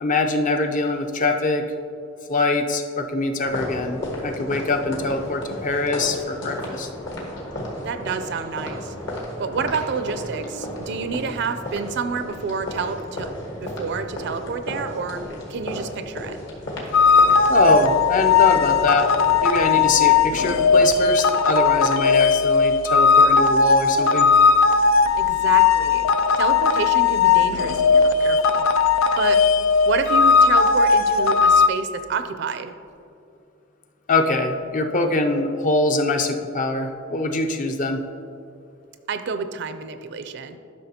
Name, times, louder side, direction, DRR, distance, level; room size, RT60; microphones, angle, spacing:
voice 1, 0.0-1.6 2.3-6.9 17.5-19.1 19.4-24.3 34.1-38.0, left 2 dB, 40° left, 4 dB, 0.6 m, -23 dB
sound 1, 3.4-21.0, left 1 dB, 65° left, 1.7 m, -34 dB
voice 2, 7.8-8.9 9.4-13.3 13.6-15.2 15.5-16.4 25.2-26.1 26.4-28.6 29.2-29.4 29.9-32.7 39.1-40.6, right 5 dB, 65° right, 9 dB, 0.5 m, -28 dB
sound 2, 16.9-31.7, left 5 dB, 85° left, 0.3 m, -17 dB
12.0 x 6.0 x 2.8 m, 2.5 s
head